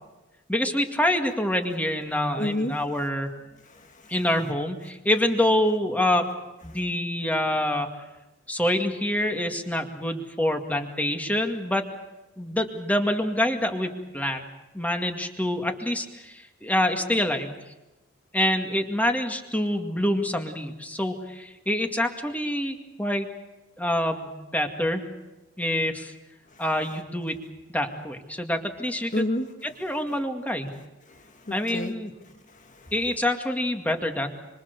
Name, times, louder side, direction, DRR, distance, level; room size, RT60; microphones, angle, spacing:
voice 1, 0.5-3.3 4.1-6.3 6.6-7.9 8.5-11.8 12.4-14.5 14.7-17.5 18.3-23.3 23.8-25.0 25.6-26.1 26.6-27.4 27.7-29.3 29.8-30.7 31.5-32.1 32.9-34.3, left 1 dB, 10° left, 4 dB, 2.2 m, -26 dB
voice 2, 2.4-2.7 3.6-4.1 26.5-26.6 29.1-29.5 31.1-31.9 32.5-32.9, left 1 dB, 40° left, 6 dB, 1.7 m, -30 dB
25.5 x 25.5 x 6.8 m, 1.0 s
head